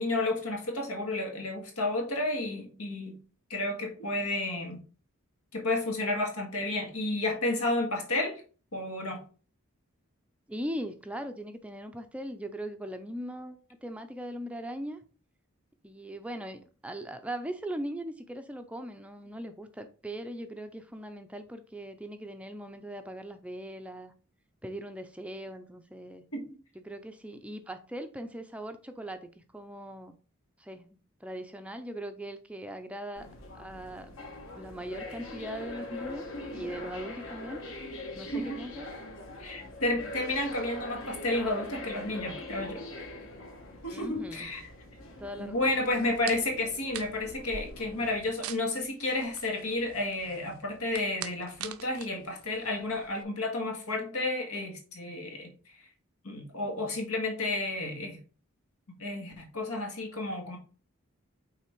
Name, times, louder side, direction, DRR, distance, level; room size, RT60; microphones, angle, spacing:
voice 1, 0.0-3.2 3.5-4.8 5.5-8.4 8.7-9.2 26.3-26.5 38.3-38.6 39.4-42.8 43.8-44.6 45.4-55.5 56.2-58.2 59.0-60.6, left 2 dB, 85° left, 1.8 m, -31 dB
voice 2, 10.5-15.0 15.8-24.1 24.6-26.3 26.8-30.2 30.6-33.3 33.5-34.1 34.5-36.2 36.5-37.6 38.2-38.9 43.9-44.5 45.2-45.8, right 1 dB, 5° right, 0.5 m, -40 dB
sound 1, 33.2-48.2, left 2 dB, 65° left, 1.5 m, -43 dB
sound 2, 45.9-53.2, right 9 dB, 75° right, 0.6 m, -45 dB
5.8 x 3.9 x 4.5 m
head